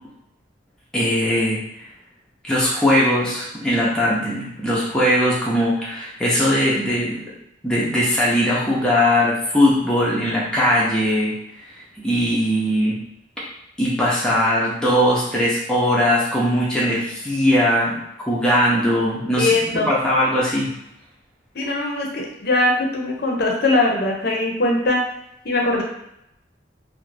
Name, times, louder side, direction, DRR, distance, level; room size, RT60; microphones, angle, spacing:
voice 1, 0.9-1.6 2.4-7.2 7.6-11.3 12.0-13.0 13.8-19.6 19.9-20.7, equal, 5° left, -7 dB, 0.5 m, -20 dB
voice 2, 19.4-19.9 21.6-25.0 25.4-25.8, left 2 dB, 55° left, 0 dB, 0.5 m, -21 dB
2.4 x 2.1 x 3.1 m, 0.81 s
head